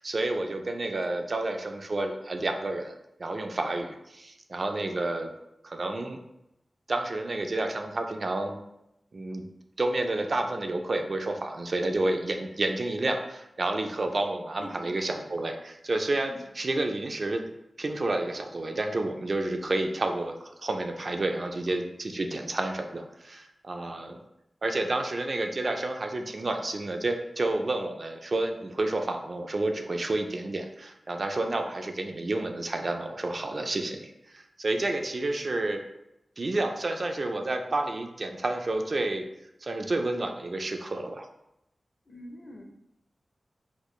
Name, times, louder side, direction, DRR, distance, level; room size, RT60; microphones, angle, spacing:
voice 1, 0.0-2.9 3.2-5.3 5.6-6.2 6.9-8.6 9.1-9.5 9.8-17.4 17.8-24.2 24.6-35.8 36.4-39.2 39.6-41.3, right 2 dB, 50° right, 4 dB, 0.3 m, -30 dB
voice 2, 14.6-14.9 16.2-16.4 31.4-31.6 42.1-42.7, left 1 dB, 35° left, 2 dB, 0.5 m, -46 dB
4.0 x 2.2 x 3.1 m, 0.85 s
wide cardioid pair, 110°, 0 cm